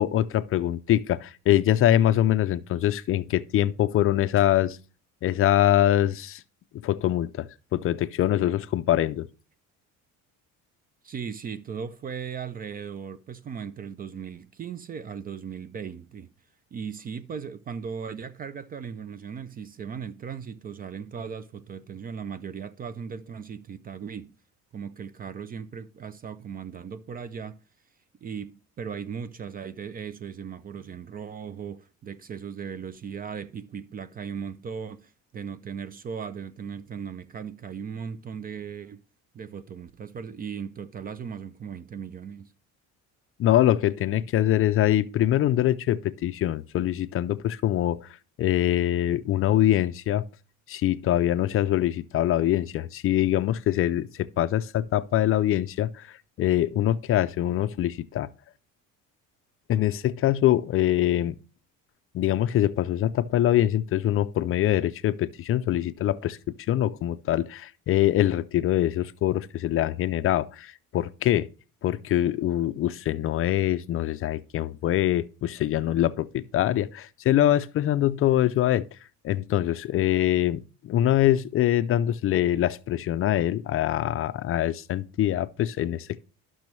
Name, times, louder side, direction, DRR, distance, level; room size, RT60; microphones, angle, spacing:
voice 1, 0.0-4.8 5.2-6.4 6.8-9.3 43.4-48.1 48.4-50.2 50.7-56.1 56.4-58.3 59.7-61.4 62.1-66.4 66.7-71.5 71.8-78.9 79.2-86.2, left 12 dB, 45° left, 0.4 m, -24 dB
voice 2, 11.0-16.3 16.7-24.4 24.7-27.6 28.2-39.0 39.3-42.5, right 7 dB, 30° right, 0.4 m, -37 dB
12.0 x 6.1 x 3.1 m
cardioid pair, 135°, 32 cm